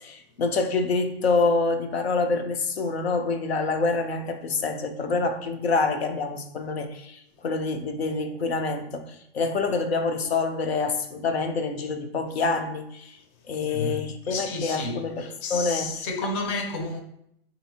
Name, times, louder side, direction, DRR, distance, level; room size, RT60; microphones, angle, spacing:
voice 1, 0.0-13.2 13.5-15.9, left 3 dB, 85° left, 0.6 m, -26 dB
voice 2, 13.6-17.0, left 3 dB, 30° left, 0.4 m, -31 dB
4.1 x 2.6 x 2.8 m
hypercardioid pair, 135°, 31 cm